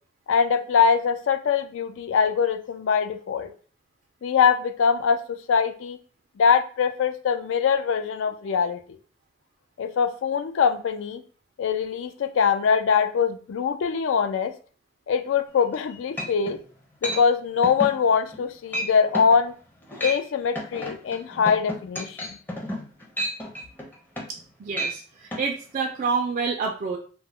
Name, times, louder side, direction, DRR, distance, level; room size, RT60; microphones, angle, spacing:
voice 1, 0.3-3.5 4.2-6.0 6.4-8.8 9.8-11.2 11.6-14.5 15.1-16.6 17.0-19.5 20.0-22.2, left 6 dB, 80° left, 9 dB, 0.3 m, -23 dB
sound 1, 15.7-15.8 16.2-16.6 17.0-17.2 17.6-18.0 18.3-18.5 18.7-18.9 19.1-19.4 19.8-20.2 20.6-24.4 24.7-25.0 25.3-25.4, equal, 10° left, 0.5 m, -31 dB
voice 2, 24.6-25.0 25.4-27.0, right 5 dB, 45° right, 2 dB, 0.3 m, -27 dB
2.2 x 2.0 x 3.5 m, 0.41 s
head